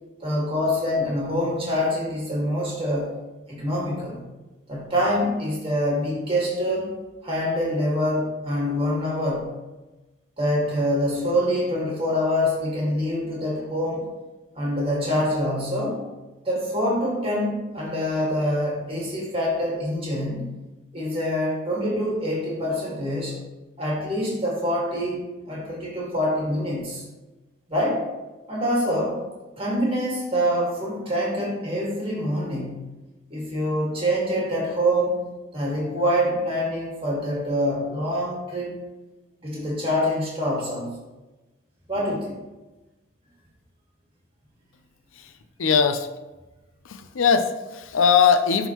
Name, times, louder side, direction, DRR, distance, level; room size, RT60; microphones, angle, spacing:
voice 1, 0.2-3.1 3.5-4.2 4.7-6.9 7.2-9.5 10.4-14.1 14.5-16.0 16.4-20.5 20.9-23.4 23.8-27.0 27.7-28.0 28.5-29.2 29.6-32.8 33.3-38.8 39.4-40.9 41.9-42.4, equal, 30° right, -4 dB, 1.9 m, -25 dB
voice 2, 45.6-46.1 46.8-48.7, left 6 dB, 85° left, 9 dB, 0.5 m, -20 dB
11.0 x 3.7 x 3.0 m, 1.1 s
head